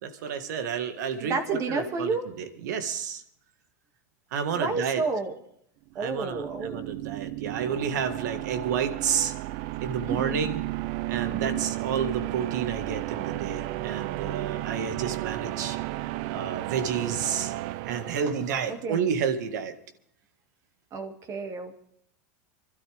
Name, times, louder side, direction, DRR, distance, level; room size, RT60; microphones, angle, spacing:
voice 1, 0.0-3.2 4.3-5.0 6.0-9.3 9.8-10.6 11.1-15.8 16.3-17.5 17.9-19.7, right 7 dB, 80° right, 8 dB, 1.8 m, -30 dB
voice 2, 1.2-2.3 4.5-5.3 5.9-6.9 10.1-10.5 11.3-11.6 18.7-19.1 20.9-21.8, right 4 dB, 35° right, 6 dB, 2.2 m, -31 dB
sound 1, 5.9-18.9, right 17 dB, 55° right, 0.5 m, -33 dB
25.5 x 12.5 x 3.5 m, 0.68 s
supercardioid pair, 135°, 9 cm